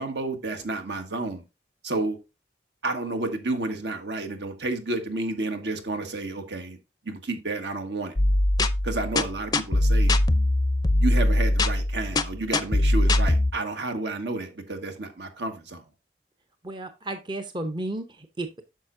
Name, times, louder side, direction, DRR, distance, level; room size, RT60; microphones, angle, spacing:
voice 1, 0.0-1.4 1.8-2.2 2.8-6.8 7.0-8.1 8.8-10.1 11.0-15.8, right 2 dB, 70° right, 1.5 m, -31 dB
sound 1, 8.2-13.5, left 1 dB, 20° left, 0.5 m, -22 dB
voice 2, 16.6-18.6, right 1 dB, 25° right, 0.7 m, -33 dB
9.2 x 6.5 x 2.6 m
head